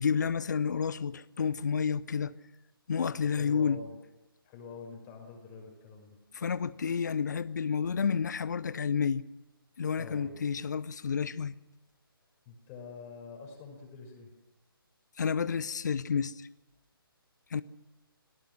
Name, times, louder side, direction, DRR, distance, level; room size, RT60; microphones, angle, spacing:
voice 1, 0.0-2.3 2.9-3.8 6.3-9.2 9.8-11.5 15.2-16.5 17.5-17.6, left 6 dB, 50° left, 0.8 m, -30 dB
voice 2, 3.1-3.9 4.4-6.2 10.0-10.4 12.5-14.3, left 4 dB, 20° left, 5.7 m, -46 dB
26.5 x 18.0 x 6.4 m
figure-of-eight pair, 140°, 12 cm